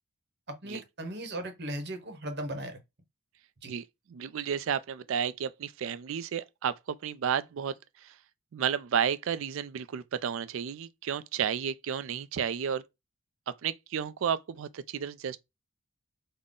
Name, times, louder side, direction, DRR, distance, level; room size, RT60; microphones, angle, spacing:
voice 1, 0.5-2.8 3.6-3.7, right 1 dB, 50° right, 0.9 m, -37 dB
voice 2, 4.1-7.7 8.0-8.1 8.5-12.8 13.6-15.4, right 8 dB, 65° right, 0.3 m, -32 dB
3.8 x 2.1 x 3.7 m
head